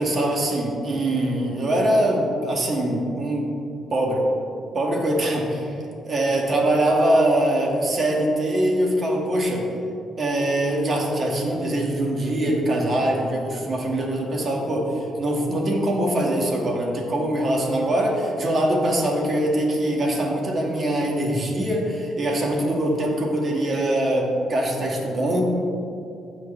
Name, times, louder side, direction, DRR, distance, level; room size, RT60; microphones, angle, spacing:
voice 1, 0.0-3.5 3.9-4.3 4.7-9.7 10.2-25.4, right 1 dB, 45° right, -1 dB, 2.0 m, -23 dB
15.5 x 5.2 x 3.3 m, 2.6 s
cardioid pair, 90°, 0 cm